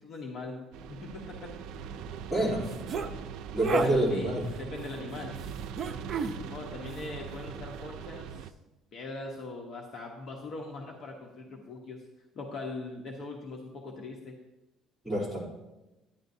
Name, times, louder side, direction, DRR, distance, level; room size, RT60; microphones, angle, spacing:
voice 1, 0.0-1.5 3.8-5.4 6.5-8.5 8.9-12.0 12.3-14.3, left 3 dB, 45° left, 0 dB, 1.0 m, -41 dB
sound 1, 0.7-8.5, right 7 dB, 80° right, 0.4 m, -41 dB
voice 2, 2.3-2.7 3.5-4.5 15.0-15.4, right 1 dB, 5° left, -7 dB, 3.0 m, -27 dB
sound 2, 2.7-3.1 3.6-3.9 5.8-6.4, right 5 dB, 40° right, 0.7 m, -31 dB
10.5 x 10.5 x 2.7 m, 1.0 s
cardioid pair, 155°, 0 cm